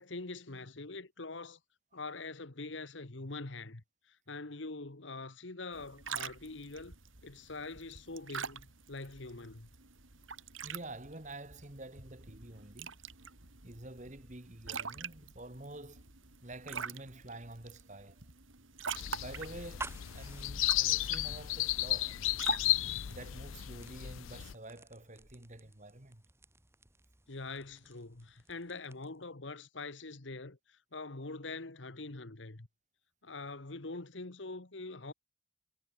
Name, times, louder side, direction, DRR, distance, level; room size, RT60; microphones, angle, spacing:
voice 1, 0.0-1.6 1.9-6.9 7.2-9.7 27.3-32.7 33.2-35.1, left 3 dB, 70° left, 1.5 m, -44 dB
sound 1, 5.7-23.7, right 6 dB, 85° right, 4.1 m, -45 dB
voice 2, 10.6-12.9 13.6-16.0 16.4-18.2 19.2-22.2 23.1-26.2, right 2 dB, 35° right, 2.2 m, -48 dB
sound 2, 18.9-24.5, left 16 dB, 90° left, 0.5 m, -34 dB
sound 3, 19.7-29.3, right 3 dB, 15° right, 2.7 m, -53 dB
head